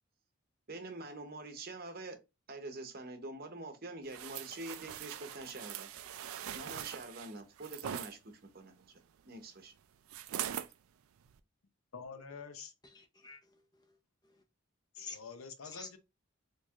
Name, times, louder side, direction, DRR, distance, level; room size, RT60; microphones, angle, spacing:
voice 1, 0.7-2.2 2.5-5.9 6.5-9.7, right 2 dB, 45° right, 0.8 m, -46 dB
sound 1, 4.1-8.1 10.1-10.7 11.3-11.4, right 10 dB, 90° right, 0.4 m, -42 dB
voice 2, 11.9-12.7 14.9-16.0, left 5 dB, 90° left, 0.7 m, -47 dB
voice 3, 12.8-14.4 15.0-15.2 15.6-15.9, left 4 dB, 20° left, 0.5 m, -51 dB
4.4 x 3.0 x 2.3 m
head